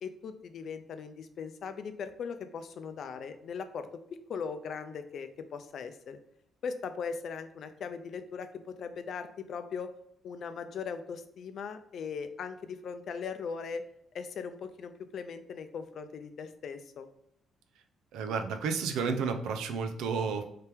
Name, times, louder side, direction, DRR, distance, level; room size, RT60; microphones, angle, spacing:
voice 1, 0.0-3.9 4.3-6.2 6.6-9.9 10.2-13.8 14.1-17.1, left 6 dB, 65° left, 9 dB, 0.4 m, -39 dB
voice 2, 18.1-20.5, right 5 dB, 85° right, 7 dB, 0.5 m, -31 dB
3.3 x 2.9 x 3.3 m, 0.76 s
cardioid pair, 90°, 0 cm